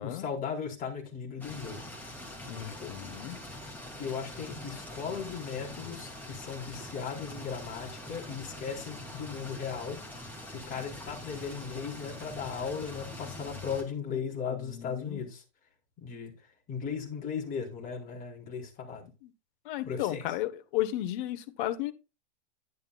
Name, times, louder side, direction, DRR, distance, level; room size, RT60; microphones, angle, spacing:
voice 1, 0.0-1.9 2.8-2.9 4.0-10.0 10.5-15.4 16.0-16.3 16.7-19.1 19.8-20.3, left 6 dB, 25° left, 4.1 m, -37 dB
sound 1, 1.4-13.8, left 1 dB, 5° left, 2.6 m, -44 dB
voice 2, 2.4-3.4 14.5-15.2 19.2-19.3 19.6-21.9, left 14 dB, 45° left, 1.3 m, -34 dB
11.0 x 10.5 x 2.4 m
supercardioid pair, 145°, 34 cm